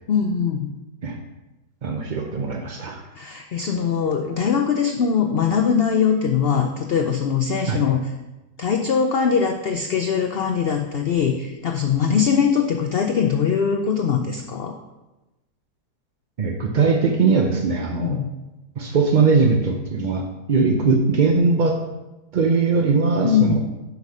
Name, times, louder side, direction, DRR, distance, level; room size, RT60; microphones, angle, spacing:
voice 1, 0.1-0.7 3.2-8.1 8.6-14.7 17.9-18.3 23.2-23.6, left 7 dB, 85° left, 4 dB, 0.5 m, -21 dB
voice 2, 1.8-3.0 7.7-7.8 16.4-18.2 18.8-21.8 22.3-23.6, right 4 dB, 65° right, 2 dB, 0.4 m, -20 dB
6.0 x 5.6 x 5.3 m, 1.0 s
omnidirectional pair, 1.7 m